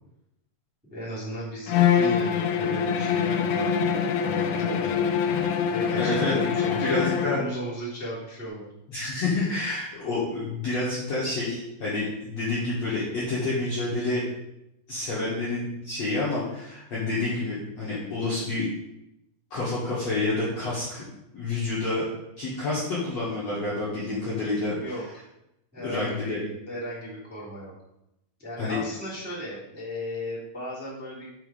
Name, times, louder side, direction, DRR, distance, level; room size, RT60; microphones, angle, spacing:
voice 1, 0.9-3.9 4.2-5.1 5.7-8.7 24.7-25.0 25.7-27.7 28.4-31.3, equal, 5° right, -9 dB, 2.3 m, -35 dB
Bowed string instrument, 1.7-7.5, left 7 dB, 85° left, 2.9 m, -24 dB
voice 2, 6.0-6.4 6.7-7.4 8.9-14.3 14.9-18.7 19.5-21.0 21.3-22.1 22.4-24.8 25.8-26.4 28.6-28.8, left 2 dB, 50° left, -9 dB, 2.2 m, -28 dB
6.2 x 6.2 x 5.0 m, 0.85 s
omnidirectional pair, 4.9 m